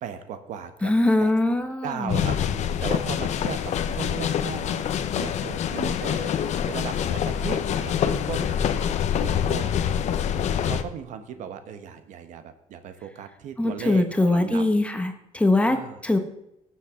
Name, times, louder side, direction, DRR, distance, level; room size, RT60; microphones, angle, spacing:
voice 1, 0.0-0.9 1.2-1.3 1.8-2.4 2.8-4.8 5.2-8.6 9.2-9.8 10.6-14.6 15.6-16.2, right 8 dB, 75° right, 9 dB, 1.1 m, -36 dB
voice 2, 0.8-2.2 13.6-15.8 16.0-16.2, left 2 dB, 10° left, 6 dB, 1.3 m, -22 dB
sound 1, 2.1-10.8, left 9 dB, 60° left, 0.8 m, -26 dB
18.5 x 7.5 x 3.7 m, 0.83 s
cardioid pair, 115°, 13 cm